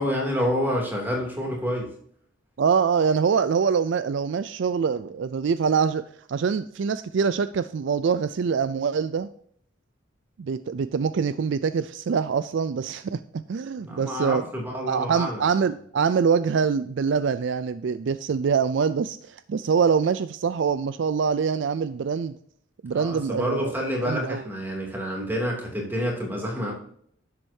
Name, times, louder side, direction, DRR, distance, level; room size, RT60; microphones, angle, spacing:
voice 1, 0.0-1.9 13.8-15.4 22.9-26.7, equal, 10° right, -1 dB, 2.7 m, -28 dB
voice 2, 2.6-6.0 6.3-9.3 10.4-14.4 14.9-22.4 22.8-23.7 24.0-24.5, right 6 dB, 60° right, 13 dB, 0.4 m, -24 dB
11.0 x 7.7 x 2.7 m, 0.63 s
head